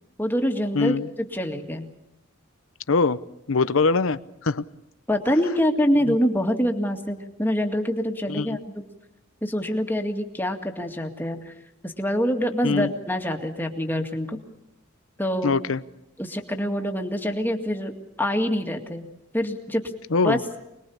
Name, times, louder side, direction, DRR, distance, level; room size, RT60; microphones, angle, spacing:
voice 1, 0.2-1.9 5.1-8.8 9.4-11.5 11.8-14.4 15.2-15.5 16.2-17.9 18.2-19.1 19.3-19.8 20.1-20.4, equal, 10° left, 4 dB, 2.1 m, -25 dB
voice 2, 0.7-1.1 2.9-3.2 3.5-4.6 6.1-6.2 8.3-8.6 12.6-12.9 15.4-15.8 20.1-20.4, left 4 dB, 75° left, 14 dB, 0.8 m, -22 dB
26.0 x 21.0 x 7.1 m, 0.87 s
head